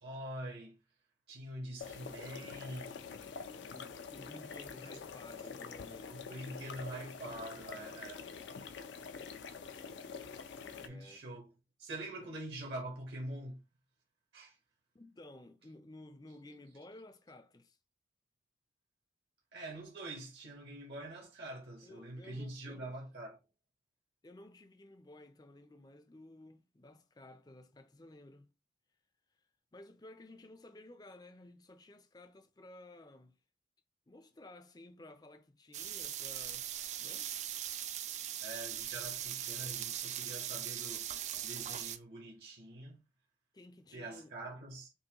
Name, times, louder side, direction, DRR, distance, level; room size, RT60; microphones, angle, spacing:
voice 1, 0.0-0.8 1.3-3.0 6.1-8.2 10.8-11.5 11.8-13.6 14.3-14.6 19.5-23.4 38.4-43.0 43.9-44.9, right 1 dB, 65° right, 1.1 m, -45 dB
sound 1, 1.8-10.9, left 5 dB, 80° left, 0.5 m, -46 dB
voice 2, 3.7-6.3 10.7-11.2 14.9-17.8 21.8-23.0 24.2-28.5 29.7-33.4 34.1-36.7 37.0-37.4 43.5-44.3, left 1 dB, 20° left, 0.4 m, -54 dB
sound 2, 35.7-42.0, right 11 dB, 40° right, 0.3 m, -40 dB
5.3 x 2.2 x 2.9 m
head